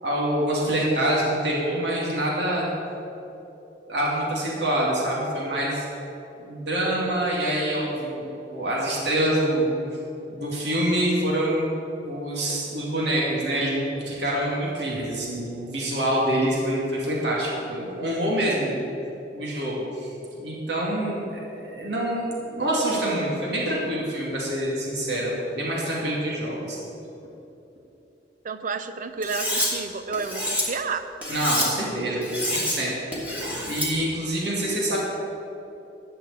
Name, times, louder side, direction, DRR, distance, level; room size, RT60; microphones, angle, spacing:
voice 1, 0.0-2.7 3.9-5.9 6.4-9.8 10.3-11.7 12.1-18.8 19.3-20.1 20.4-26.8 31.3-32.9 33.6-35.0, right 1 dB, 70° right, -5 dB, 2.6 m, -26 dB
voice 2, 28.4-31.1, right 4 dB, 50° right, 10 dB, 0.6 m, -30 dB
Cutlery silverware, 29.2-29.7 30.1-30.6 31.2-31.7 32.2-32.8 33.1-33.9, left 1 dB, 10° right, 2.9 m, -27 dB
13.0 x 5.7 x 8.6 m, 3.0 s
head